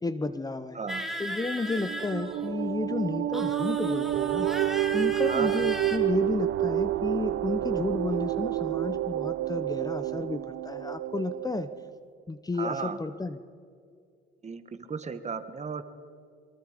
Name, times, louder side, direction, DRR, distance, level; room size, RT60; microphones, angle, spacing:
voice 1, 0.0-0.8 1.2-4.5 4.9-11.7 12.3-13.4, left 3 dB, 20° left, 12 dB, 0.8 m, -32 dB
voice 2, 0.7-1.1 1.8-1.9 5.2-5.6 12.6-13.0 14.4-15.8, right 5 dB, 35° right, 9 dB, 1.5 m, -35 dB
sound 1, 0.9-2.7 3.3-6.0, right 1 dB, ahead, 2.4 m, -37 dB
sound 2, 1.6-11.9, right 13 dB, 80° right, 0.8 m, -29 dB
26.5 x 23.5 x 5.2 m, 2.3 s
cardioid pair, 90°, 20 cm